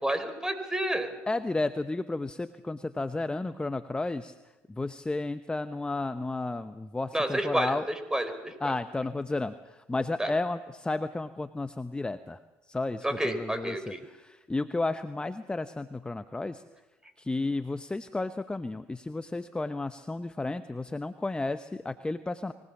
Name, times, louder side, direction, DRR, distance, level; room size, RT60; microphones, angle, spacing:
voice 1, 0.0-1.1 7.1-8.7 10.2-10.3 13.0-14.0, right 1 dB, 10° right, 9 dB, 4.4 m, -30 dB
voice 2, 1.3-4.3 4.7-7.9 8.6-12.4 12.7-16.6 17.2-22.5, left 2 dB, 15° left, 11 dB, 0.9 m, -32 dB
24.5 x 18.5 x 7.3 m, 1.1 s
supercardioid pair, 75°, 7 cm